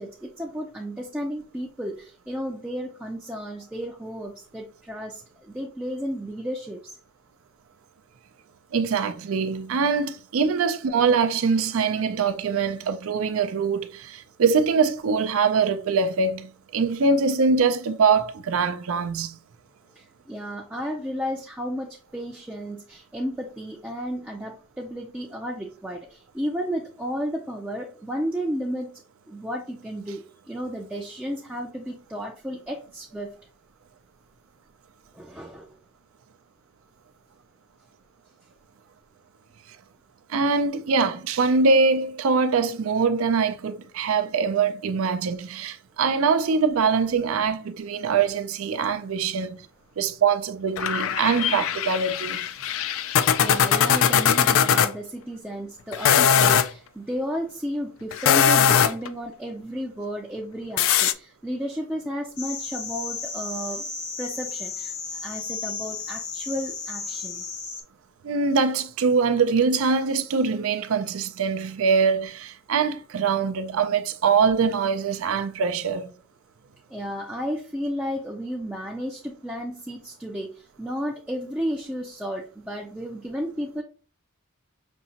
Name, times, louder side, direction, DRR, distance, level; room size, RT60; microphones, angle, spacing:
voice 1, 0.0-7.0 20.0-28.9 29.3-30.2 30.5-33.3 35.1-35.7 53.4-63.8 64.2-64.9 65.2-67.4 76.9-83.8, equal, 5° right, 0.4 m, -33 dB
voice 2, 8.7-19.4 40.3-49.6 50.0-52.4 68.2-76.1, right 5 dB, 70° right, 0.4 m, -23 dB
sound 1, 50.8-54.9 55.9-56.7 58.1-59.1 60.8-61.1, left 8 dB, 65° left, 0.3 m, -20 dB
sound 2, 62.4-67.8, left 5 dB, 85° left, 1.0 m, -34 dB
5.3 x 2.8 x 2.8 m
head